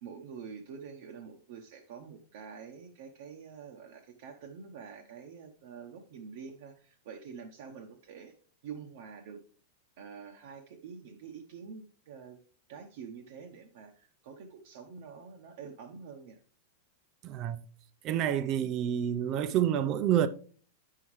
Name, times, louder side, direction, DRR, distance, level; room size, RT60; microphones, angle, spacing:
voice 1, 0.0-8.3 8.6-9.4 10.0-12.4 12.7-16.4, right 6 dB, 60° right, 0.9 m, -47 dB
voice 2, 17.2-17.6 18.0-20.3, right 10 dB, 35° right, 0.4 m, -28 dB
9.0 x 5.6 x 3.1 m
supercardioid pair, 155°, 0 cm